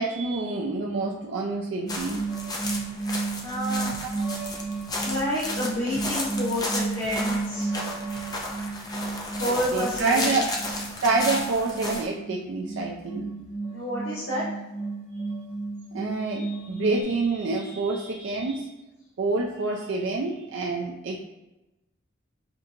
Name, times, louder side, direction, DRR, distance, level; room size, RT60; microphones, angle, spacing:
voice 1, 0.0-2.3 4.0-4.2 9.7-10.5 11.0-13.3 15.9-18.7 19.2-21.2, right 3 dB, 65° right, -1 dB, 0.4 m, -27 dB
sound 1, 1.8-17.0, right 3 dB, 20° right, 1.0 m, -33 dB
sound 2, 1.9-12.1, left 2 dB, 20° left, 0.5 m, -34 dB
voice 2, 3.4-3.9 5.0-7.7 9.4-10.4 13.7-14.5, left 1 dB, 75° left, -11 dB, 1.4 m, -29 dB
5.7 x 2.5 x 2.7 m, 0.98 s
head